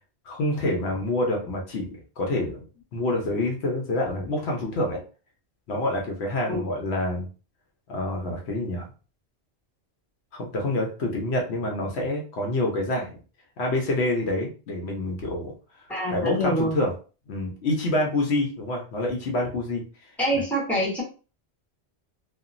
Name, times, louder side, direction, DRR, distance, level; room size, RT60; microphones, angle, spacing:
voice 1, 0.3-1.9 2.2-2.6 2.9-5.0 5.7-7.3 7.9-8.9 10.3-13.2 13.6-15.5 16.1-16.9 17.3-19.8, left 1 dB, 75° left, 1 dB, 1.0 m, -27 dB
voice 2, 15.9-16.7 20.2-21.0, equal, ahead, -4 dB, 1.1 m, -25 dB
2.8 x 2.4 x 2.5 m, 0.35 s
omnidirectional pair, 1.1 m